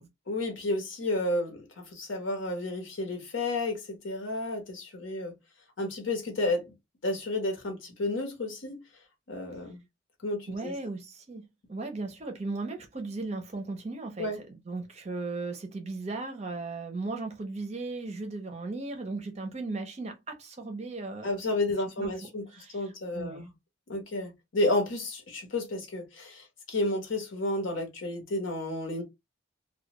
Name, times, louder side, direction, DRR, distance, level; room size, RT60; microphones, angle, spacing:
voice 1, 0.3-5.3 5.8-6.7 7.0-8.8 9.3-9.8 10.2-10.7 14.2-14.4 21.2-22.4 22.7-23.5 23.9-29.0, left 2 dB, 70° left, 0.9 m, -31 dB
voice 2, 10.5-11.4 11.7-21.3 22.0-23.5, right 3 dB, 30° right, 0.5 m, -37 dB
2.2 x 2.2 x 2.9 m
head